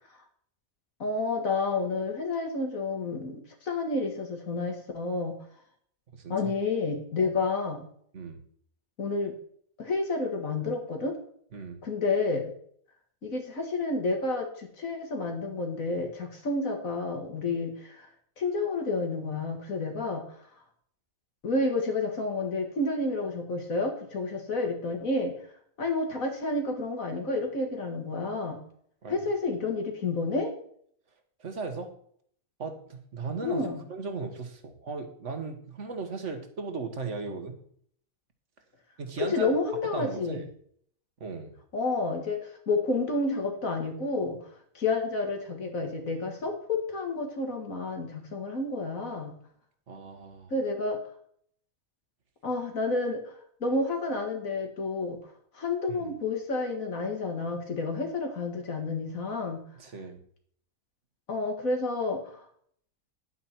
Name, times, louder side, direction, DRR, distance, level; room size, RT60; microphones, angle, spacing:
voice 1, 1.0-5.4 6.3-7.9 9.0-9.3 9.8-11.2 11.8-12.5 13.2-18.1 18.4-20.2 21.4-25.3 25.8-28.6 29.1-30.5 33.4-33.8 39.2-40.4 41.7-44.4 44.7-49.4 50.5-51.0 52.4-53.3 53.6-55.2 55.5-59.6 61.3-62.4, left 3 dB, 75° left, 3 dB, 2.3 m, -30 dB
voice 2, 11.5-11.8 29.0-29.2 31.4-31.9 32.6-37.6 39.0-39.5 39.8-40.5 41.2-41.6 49.9-50.5 55.9-56.1 59.8-60.2, right 4 dB, 60° right, 6 dB, 1.8 m, -37 dB
11.0 x 8.5 x 4.5 m, 0.62 s
omnidirectional pair, 1.5 m